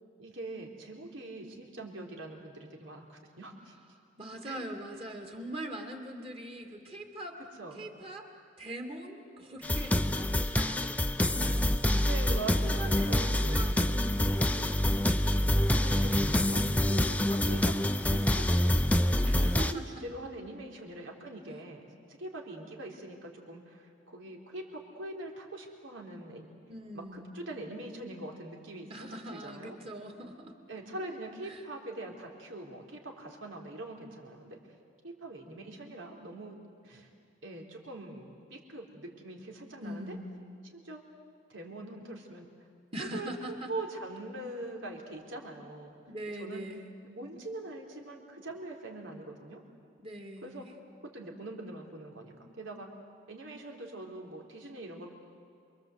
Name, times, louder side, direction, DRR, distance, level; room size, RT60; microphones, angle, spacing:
voice 1, 0.2-3.7 4.4-4.7 7.6-7.9 11.8-13.7 15.8-18.7 19.4-26.5 26.9-29.8 30.7-34.6 35.0-36.6 36.8-37.1 37.4-40.2 40.7-41.0 41.5-42.5 43.0-46.0 46.4-46.7 47.0-49.6 50.4-50.7 51.0-52.9 53.3-55.1, right 2 dB, 90° right, 0 dB, 3.7 m, -43 dB
voice 2, 4.2-7.4 7.7-8.3 8.6-11.9 12.3-15.1 19.2-20.0 26.7-27.3 28.9-30.6 31.4-31.6 39.8-40.4 42.9-43.7 46.1-46.9 50.0-50.7, right 1 dB, 30° right, 3 dB, 2.3 m, -42 dB
sound 1, 9.6-19.7, left 1 dB, 10° left, 0.6 m, -26 dB
28.0 x 23.0 x 8.0 m, 2.3 s
head